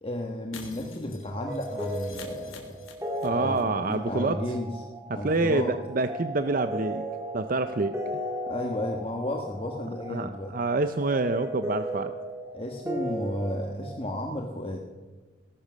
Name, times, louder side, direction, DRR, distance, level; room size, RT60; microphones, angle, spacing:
voice 1, 0.0-2.8 3.2-3.6 3.9-4.8 5.1-5.7 8.5-10.5 12.5-14.8, left 1 dB, 30° left, 2 dB, 1.3 m, -33 dB
Shatter, 0.5-3.6 3.9-4.0 4.3-4.4, left 4 dB, 90° left, 3.5 m, -47 dB
sound 1, 1.3-14.3, equal, 15° right, 2.2 m, -36 dB
voice 2, 3.2-4.4 5.1-7.1 7.3-8.2 10.1-12.1, right 3 dB, 45° right, 10 dB, 0.6 m, -27 dB
19.0 x 12.0 x 6.3 m, 1.3 s
head